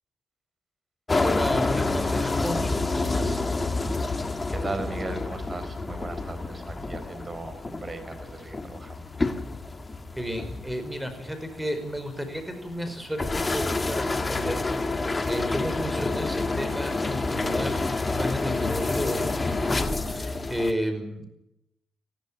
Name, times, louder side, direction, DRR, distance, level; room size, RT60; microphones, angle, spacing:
sound 1, 1.1-20.7, left 3 dB, 25° left, 1.9 m, -28 dB
voice 1, 1.2-3.4 10.2-21.3, equal, 5° right, 8 dB, 5.2 m, -33 dB
voice 2, 4.5-9.1, right 3 dB, 30° right, 10 dB, 4.7 m, -37 dB
20.0 x 14.5 x 9.9 m, 0.85 s
cardioid pair, 90°, 0 cm